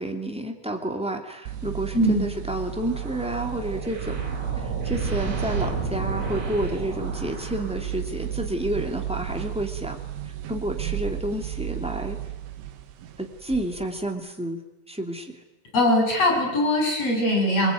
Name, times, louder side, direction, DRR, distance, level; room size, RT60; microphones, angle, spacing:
voice 1, 0.0-4.2 4.6-10.0 10.2-12.2 13.2-14.6 14.9-15.3, right 1 dB, 5° right, 2 dB, 0.6 m, -30 dB
sound 1, 1.5-14.1, right 12 dB, 80° right, 4.1 m, -34 dB
voice 2, 1.9-2.2 15.7-17.7, left 1 dB, 30° left, 2 dB, 8.7 m, -21 dB
sound 2, 2.8-8.2, right 3 dB, 35° right, 4.9 m, -32 dB
28.0 x 21.0 x 9.4 m, 1.0 s
omnidirectional pair, 5.6 m